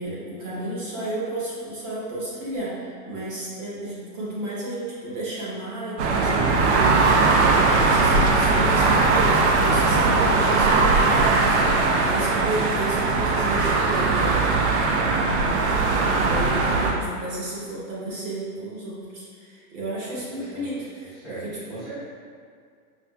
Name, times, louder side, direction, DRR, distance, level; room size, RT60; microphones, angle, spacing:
voice 1, 0.0-21.9, right 1 dB, 30° right, -6 dB, 0.8 m, -33 dB
sound 1, 6.0-16.9, right 3 dB, 50° right, 0.5 m, -20 dB
voice 2, 20.1-20.6 21.2-21.4 21.7-21.9, right 3 dB, ahead, -14 dB, 0.7 m, -39 dB
5.7 x 2.5 x 2.2 m, 2.2 s
hypercardioid pair, 145°, 46 cm